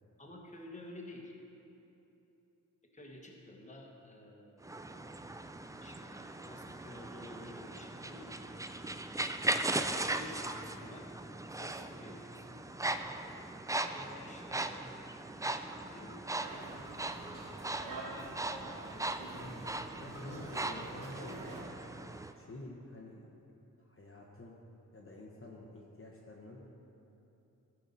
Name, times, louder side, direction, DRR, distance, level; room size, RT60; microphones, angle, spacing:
voice 1, 0.2-1.3 2.9-4.7 5.8-8.3 9.9-11.1 11.5-12.6 13.9-14.9 15.4-16.6 18.2-18.8 20.4-20.5, left 1 dB, 20° left, 0 dB, 1.3 m, -51 dB
sound 1, 4.6-22.3, right 2 dB, 10° right, 0.3 m, -39 dB
sound 2, 16.4-21.6, right 2 dB, 70° right, 1.6 m, -47 dB
voice 2, 19.3-19.7 20.0-21.4 22.3-23.4 23.8-24.6 24.9-26.6, left 2 dB, 40° left, -3 dB, 1.1 m, -49 dB
13.5 x 4.7 x 5.5 m, 3.0 s
cardioid pair, 75°, 34 cm